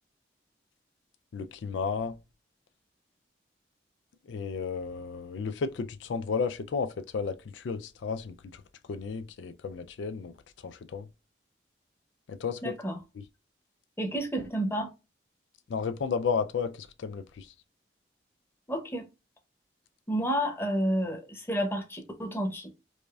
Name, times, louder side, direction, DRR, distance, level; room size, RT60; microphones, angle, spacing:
voice 1, 1.3-2.2 4.3-8.6 8.9-10.3 10.6-11.1 12.3-12.7 15.7-17.5, left 5 dB, 85° left, 0.4 m, -33 dB
voice 2, 12.6-13.0 14.0-14.9 18.7-19.1 20.1-22.7, equal, 15° left, 0.8 m, -30 dB
4.8 x 2.6 x 2.3 m
head